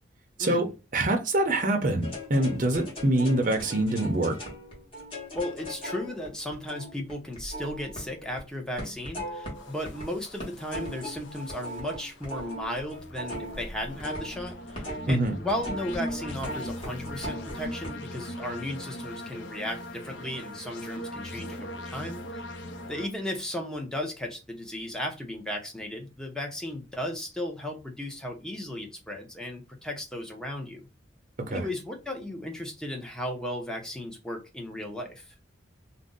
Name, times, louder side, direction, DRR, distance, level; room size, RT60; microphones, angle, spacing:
voice 1, 0.9-4.3 15.1-15.3 31.5-31.7, right 1 dB, 45° right, 0.5 m, -25 dB
sound 1, 2.0-8.4 8.8-10.1 10.4-17.9, equal, 30° left, 1.1 m, -39 dB
voice 2, 5.3-14.8 15.1-22.4 22.9-30.9 31.5-35.3, left 1 dB, 5° left, 0.6 m, -35 dB
sound 2, 9.6-23.1, left 1 dB, 70° left, 0.5 m, -40 dB
2.5 x 2.0 x 3.6 m
head